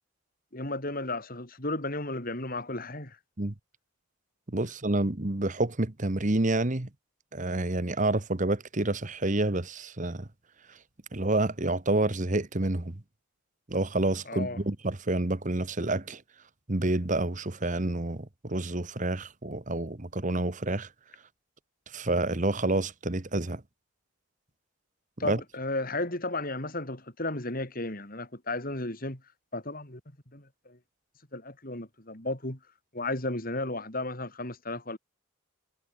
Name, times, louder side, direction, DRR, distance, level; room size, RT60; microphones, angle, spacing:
voice 1, 0.5-3.2 14.3-14.6 25.2-29.2 29.5-30.0 30.3-30.8 31.3-32.6 32.9-35.0, left 2 dB, 40° left, 4.1 m, -34 dB
voice 2, 4.5-6.9 7.3-10.3 11.1-13.0 13.7-16.2 16.7-20.9 21.9-23.6 25.2-25.4, right 2 dB, 35° right, 1.3 m, -28 dB
head